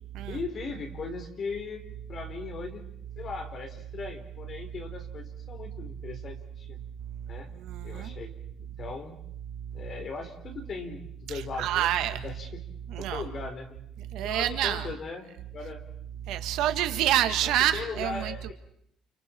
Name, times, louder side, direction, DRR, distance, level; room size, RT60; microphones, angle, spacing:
voice 1, 0.3-1.8 2.1-2.8 3.2-6.8 7.2-7.5 7.8-8.3 8.6-9.2 9.7-12.6 13.0-13.9 14.2-15.8 17.4-18.5, left 4 dB, 30° left, 4 dB, 3.7 m, -38 dB
voice 2, 7.7-8.1 11.6-12.2 12.9-13.2 14.1-14.9 16.3-18.3, right 12 dB, 65° right, 9 dB, 1.6 m, -27 dB
30.0 x 29.5 x 4.4 m, 0.72 s
cardioid pair, 170°, 0 cm